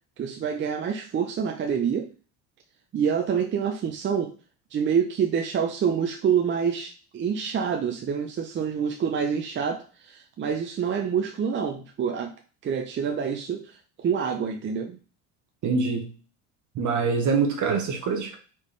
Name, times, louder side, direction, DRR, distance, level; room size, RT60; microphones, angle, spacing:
voice 1, 0.2-2.1 2.9-4.3 4.7-12.3 12.6-15.0, right 7 dB, 30° right, 3 dB, 0.5 m, -27 dB
voice 2, 15.6-16.1 16.7-18.4, right 5 dB, 50° right, 3 dB, 0.9 m, -24 dB
4.2 x 3.3 x 3.2 m, 0.37 s
supercardioid pair, 90°, 39 cm